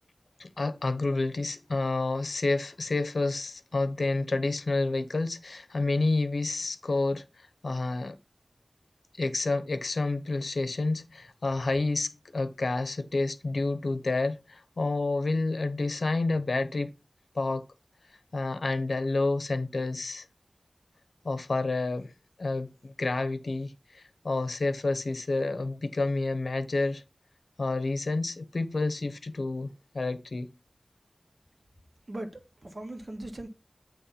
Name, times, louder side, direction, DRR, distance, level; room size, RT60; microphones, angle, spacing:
voice 1, 0.4-7.2 7.6-8.2 9.2-16.9 17.3-17.6 18.3-20.2 21.2-22.1 22.4-27.0 27.6-30.5, left 3 dB, 85° left, 0.8 m, -29 dB
voice 2, 32.1-33.5, right 1 dB, 55° right, 1.6 m, -39 dB
8.3 x 3.1 x 5.7 m
wide cardioid pair, 55°, 0 cm